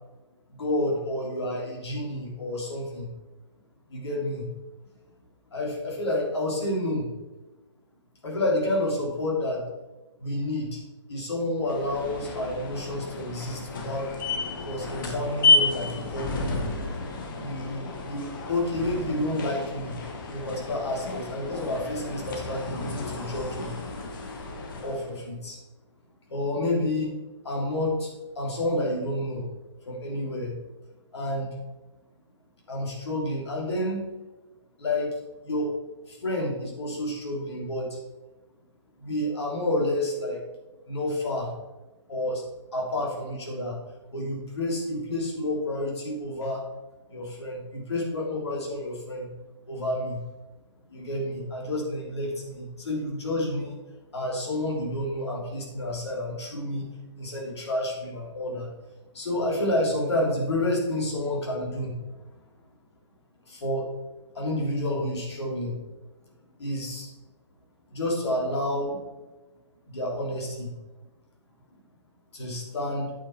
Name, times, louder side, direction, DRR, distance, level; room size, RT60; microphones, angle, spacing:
voice 1, 0.5-3.1 3.9-4.5 5.5-7.1 8.2-9.6 10.2-10.8 11.1-14.1 14.6-16.6 17.4-20.0 20.3-23.8 24.8-25.6 26.3-27.1 27.4-28.1 28.3-29.4 29.8-30.6 31.1-31.6 32.7-34.0 34.8-35.2 35.4-35.7 36.1-38.0 39.0-40.4 40.9-41.6 42.1-42.4 42.7-43.8 44.1-46.7 47.1-49.3 49.7-50.2 50.9-53.8 54.1-56.9 57.1-58.7 59.1-62.0 63.5-63.9 64.3-65.8 66.6-67.1 67.9-69.0 69.9-70.7 72.3-73.1, left 1 dB, 65° left, -2 dB, 3.3 m, -29 dB
sound 1, 11.6-25.2, left 3 dB, 45° left, 1.6 m, -31 dB
8.6 x 7.1 x 4.5 m, 1.1 s
figure-of-eight pair, 135°, 15 cm